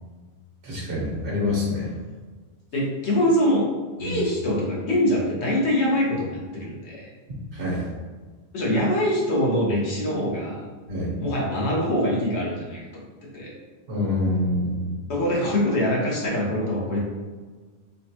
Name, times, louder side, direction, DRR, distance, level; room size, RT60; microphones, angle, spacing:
voice 1, 0.6-1.9 4.0-4.2 7.5-7.8 10.9-11.1 13.9-14.9, left 2 dB, 75° right, -5 dB, 1.3 m, -26 dB
voice 2, 2.7-3.7 4.0-7.1 8.5-10.6 11.2-12.8 13.3-13.5 15.1-17.0, equal, 85° left, -4 dB, 1.2 m, -24 dB
3.9 x 2.2 x 2.8 m, 1.4 s
omnidirectional pair, 1.1 m